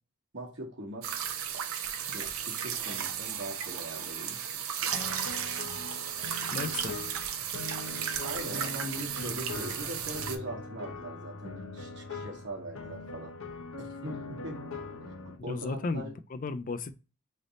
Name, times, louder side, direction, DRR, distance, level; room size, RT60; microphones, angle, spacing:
voice 1, 0.3-1.1 1.9-4.6 8.2-13.3 13.8-14.6 15.4-16.1, right 1 dB, 50° right, 1.2 m, -41 dB
sound 1, 1.0-10.4, right 8 dB, 70° right, 0.6 m, -34 dB
sound 2, 4.9-15.4, left 3 dB, 65° left, 0.8 m, -41 dB
voice 2, 6.5-7.0 15.4-16.9, left 3 dB, 35° left, 0.3 m, -35 dB
3.3 x 2.7 x 3.8 m
head